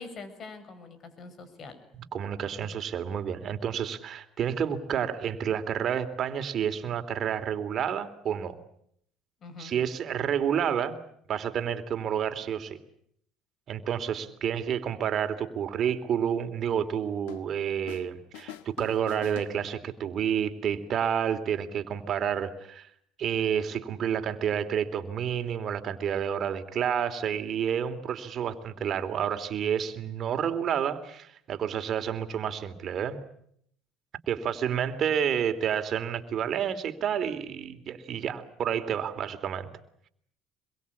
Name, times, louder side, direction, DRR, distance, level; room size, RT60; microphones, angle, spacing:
voice 1, 0.0-1.8 9.4-9.7, left 4 dB, 45° left, 12 dB, 6.4 m, -44 dB
voice 2, 2.1-8.6 9.6-11.0 11.3-12.8 13.7-22.9 23.2-33.2 34.3-39.7, right 8 dB, 50° right, 9 dB, 3.1 m, -29 dB
sound 1, 17.3-18.1 18.3-20.1, left 10 dB, 90° left, 1.9 m, -45 dB
26.0 x 22.5 x 8.6 m, 0.69 s
supercardioid pair, 90°, 0 cm